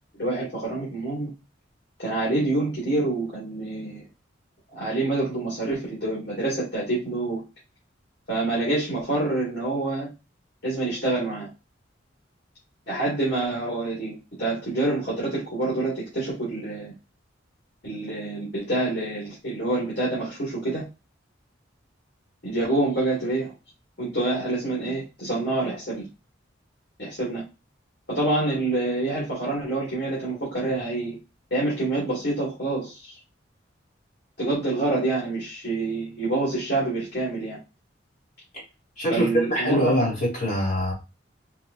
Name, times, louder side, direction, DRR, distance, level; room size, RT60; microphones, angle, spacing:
voice 1, 0.2-1.3 2.0-4.0 4.7-7.4 8.3-10.1 10.6-11.5 12.9-16.9 17.8-20.8 22.4-23.5 24.0-26.1 27.0-27.4 28.1-31.2 31.5-33.1 34.4-37.6 39.1-39.9, right 2 dB, 60° left, -6 dB, 1.7 m, -27 dB
voice 2, 39.0-40.9, equal, 40° left, -6 dB, 2.1 m, -23 dB
4.5 x 2.6 x 2.4 m, 0.29 s
head